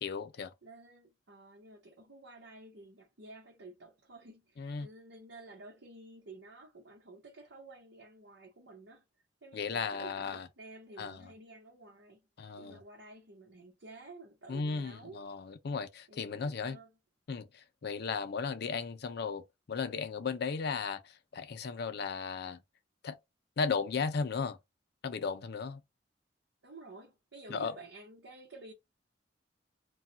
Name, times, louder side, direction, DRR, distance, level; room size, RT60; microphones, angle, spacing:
voice 1, 0.0-0.5 4.6-4.9 9.5-10.5 11.0-11.3 12.4-12.8 14.5-16.8 17.3-22.6 23.0-23.2 23.6-24.6 25.0-25.8 27.5-27.7, left 5 dB, 60° left, 0.5 m, -35 dB
voice 2, 0.6-9.0 9.4-12.2 12.6-15.2 16.1-16.9 26.6-28.7, right 2 dB, 85° right, 1.0 m, -52 dB
2.3 x 2.3 x 3.9 m
head